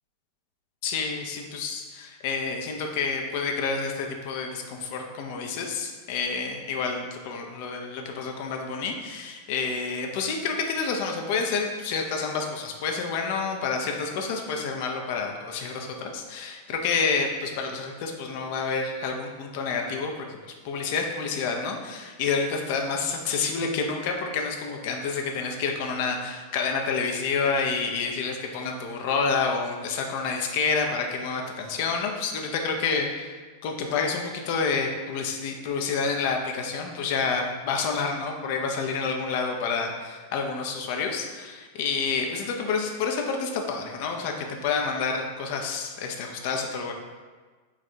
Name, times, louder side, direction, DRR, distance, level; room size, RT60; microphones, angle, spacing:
voice 1, 0.8-20.4 20.6-33.4 33.6-46.9, left 5 dB, 50° left, 2 dB, 0.5 m, -29 dB
3.4 x 2.4 x 4.2 m, 1.4 s
figure-of-eight pair, 90°, 0 cm